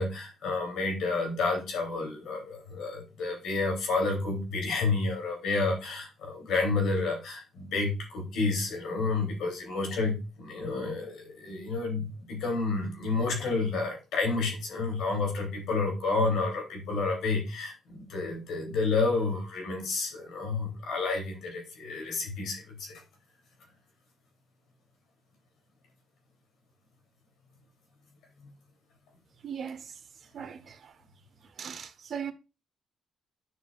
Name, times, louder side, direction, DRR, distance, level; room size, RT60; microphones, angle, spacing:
voice 1, 0.0-23.0, left 3 dB, 80° left, 3.2 m, -30 dB
voice 2, 29.4-30.0 30.3-31.0 31.6-32.3, right 7 dB, 55° right, 0.9 m, -39 dB
9.7 x 6.4 x 2.4 m
cardioid pair, 90°, 0 cm